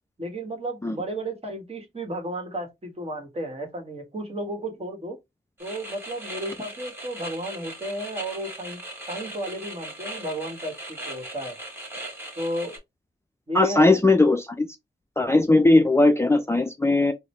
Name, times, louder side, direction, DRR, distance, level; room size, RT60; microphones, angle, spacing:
voice 1, 0.2-5.2 5.6-8.8 9.1-11.6 12.4-12.8 13.5-14.0, right 1 dB, 35° right, 1.2 m, -33 dB
sound 1, 5.6-12.8, right 1 dB, 15° right, 1.5 m, -39 dB
voice 2, 13.5-14.7 15.2-17.1, left 2 dB, 15° left, 0.4 m, -19 dB
3.8 x 2.1 x 3.1 m
wide cardioid pair, 80°, 18 cm